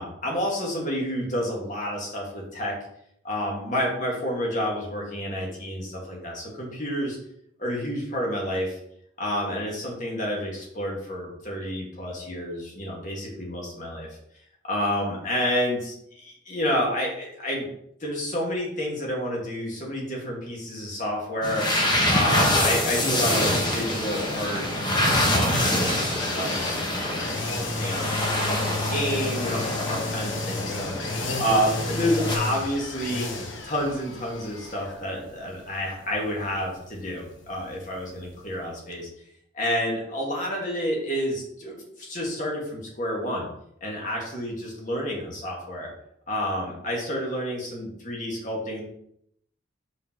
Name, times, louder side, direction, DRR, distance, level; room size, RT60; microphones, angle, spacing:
voice 1, 0.0-2.7 3.2-7.2 7.6-8.8 9.2-14.1 14.6-17.7 18.0-33.3 33.6-39.1 39.5-43.5 43.8-45.9 46.3-48.8, equal, 40° left, -1 dB, 1.7 m, -29 dB
sound 1, 21.4-32.4, left 1 dB, 20° left, 1.0 m, -26 dB
sound 2, 22.8-38.6 38.9-39.0, left 3 dB, 70° left, 0.9 m, -34 dB
5.3 x 4.1 x 4.5 m, 0.72 s
head